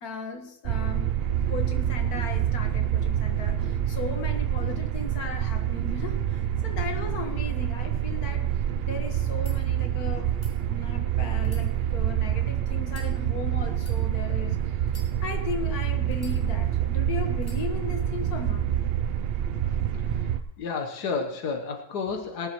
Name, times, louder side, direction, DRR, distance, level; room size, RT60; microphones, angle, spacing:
voice 1, 0.0-8.6 8.9-10.3 10.6-14.6 15.2-18.7, left 3 dB, 70° left, 4 dB, 1.9 m, -36 dB
sound 1, 0.6-20.4, right 10 dB, 85° right, 0.5 m, -27 dB
sound 2, 9.4-9.6 10.3-10.5 11.4-12.3 12.8-13.1 13.7-14.0 14.8-15.5 16.1-16.8 17.4-17.6, left 2 dB, 25° left, 3.2 m, -51 dB
voice 2, 20.6-22.5, left 5 dB, 90° left, 3 dB, 1.7 m, -31 dB
19.5 x 11.0 x 3.0 m, 0.73 s
omnidirectional pair, 1.7 m